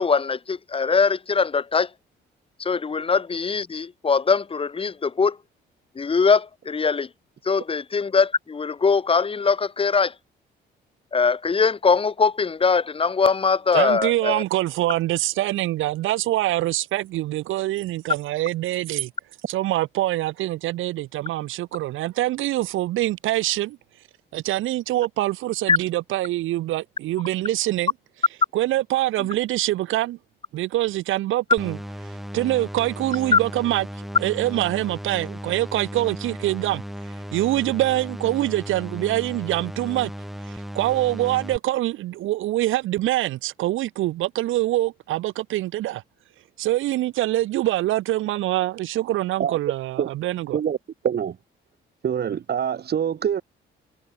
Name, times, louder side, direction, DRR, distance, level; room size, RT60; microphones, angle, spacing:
voice 1, 0.0-1.9 2.6-5.4 6.0-7.1 7.5-10.1 11.1-14.4 25.7-25.8 33.3-33.4, left 5 dB, 30° left, 1.0 m, -21 dB
voice 2, 13.7-19.1 19.5-23.8 24.3-27.9 28.5-30.2 30.5-31.8 32.3-40.1 40.4-46.0 46.6-50.6, right 15 dB, 90° right, 3.1 m, -24 dB
sound 1, 31.6-41.6, equal, ahead, 4.7 m, -36 dB
voice 3, 51.0-51.4 52.0-53.4, right 8 dB, 55° right, 2.4 m, -24 dB
cardioid pair, 90°, 20 cm